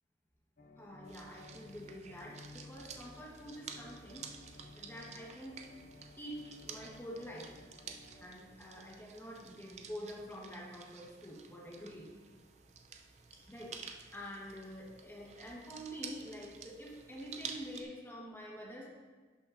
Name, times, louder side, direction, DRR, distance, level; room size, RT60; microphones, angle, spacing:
sound 1, 0.6-8.3, left 2 dB, 45° left, 0.6 m, -56 dB
voice 1, 0.8-4.2 4.7-5.6 6.2-7.5 8.2-12.1 13.3-13.7 14.1-18.9, equal, 10° left, -3 dB, 1.2 m, -47 dB
sound 2, 1.0-17.8, right 6 dB, 40° right, 0.5 m, -51 dB
11.0 x 6.0 x 2.5 m, 1.4 s
head